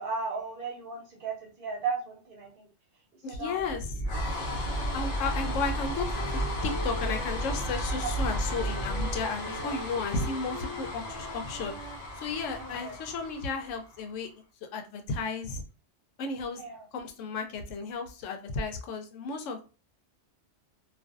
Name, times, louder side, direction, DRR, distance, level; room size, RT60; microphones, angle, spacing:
voice 1, 0.0-2.7 3.3-3.8 8.0-8.1 9.6-9.7 12.6-13.0 16.6-16.9, right 4 dB, 55° right, 0 dB, 0.8 m, -36 dB
voice 2, 3.2-3.9 4.9-6.1 6.6-11.7 12.2-14.3 14.6-15.6 16.2-16.6 16.9-19.6, left 4 dB, 90° left, 5 dB, 0.9 m, -33 dB
sound 1, 3.6-14.1, equal, 60° left, 0.8 m, -33 dB
Wind instrument woodwind instrument, 4.6-8.0 8.4-12.9, left 2 dB, 35° left, 1.0 m, -44 dB
2.4 x 2.3 x 2.4 m, 0.33 s
omnidirectional pair, 1.3 m